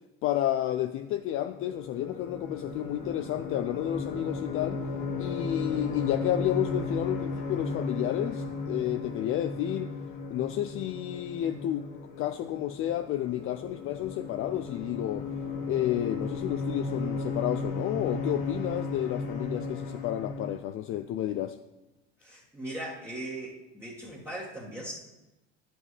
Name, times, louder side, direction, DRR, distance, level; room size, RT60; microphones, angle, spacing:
voice 1, 0.2-4.8 5.2-9.9 10.3-11.9 12.2-15.3 15.7-21.6, left 12 dB, 45° left, 9 dB, 0.4 m, -31 dB
sound 1, 1.1-20.5, left 3 dB, 75° left, 2.2 m, -35 dB
voice 2, 22.2-24.9, right 1 dB, 10° right, -6 dB, 1.4 m, -39 dB
9.2 x 7.6 x 3.2 m, 0.98 s
supercardioid pair, 105°, 30 cm